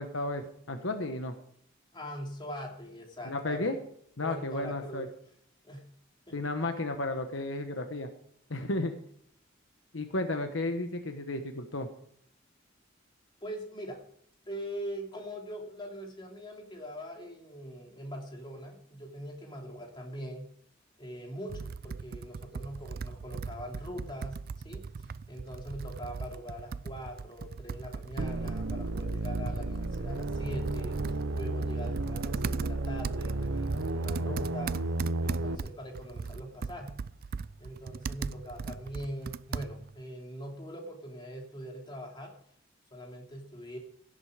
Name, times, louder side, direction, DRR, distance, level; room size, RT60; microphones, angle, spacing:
voice 1, 0.0-1.3 3.2-3.8 4.2-5.1 6.3-8.1 8.5-8.9 9.9-11.9, left 2 dB, 70° left, 6 dB, 1.2 m, -33 dB
voice 2, 1.9-3.7 4.2-5.1 5.6-5.8 6.3-6.7 13.4-14.0 14.5-20.5 21.0-34.8 35.2-36.9 37.6-42.4 42.9-43.8, equal, 25° left, 1 dB, 2.9 m, -42 dB
Computer keyboard, 21.5-40.0, right 5 dB, 50° right, 0.4 m, -39 dB
sound 1, 28.2-35.6, right 2 dB, 75° right, 0.9 m, -32 dB
17.0 x 8.0 x 5.0 m, 0.67 s
head